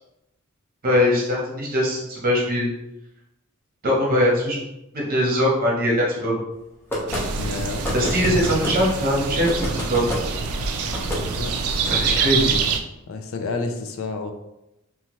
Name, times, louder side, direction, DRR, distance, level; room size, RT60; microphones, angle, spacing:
voice 1, 0.8-2.7 3.8-4.6 4.9-6.3 7.9-10.1 11.9-12.5, equal, 45° right, -4 dB, 0.9 m, -21 dB
sound 1, 6.9-7.3 7.8-8.8 9.5-10.2 10.9-11.2, left 1 dB, 10° left, 0.6 m, -28 dB
sound 2, 7.1-12.8, right 5 dB, 90° right, 0.3 m, -25 dB
voice 2, 7.4-7.8 11.3-11.5 11.9-12.4 13.1-14.3, left 3 dB, 65° left, 5 dB, 0.4 m, -30 dB
2.8 x 2.2 x 3.0 m, 0.90 s
head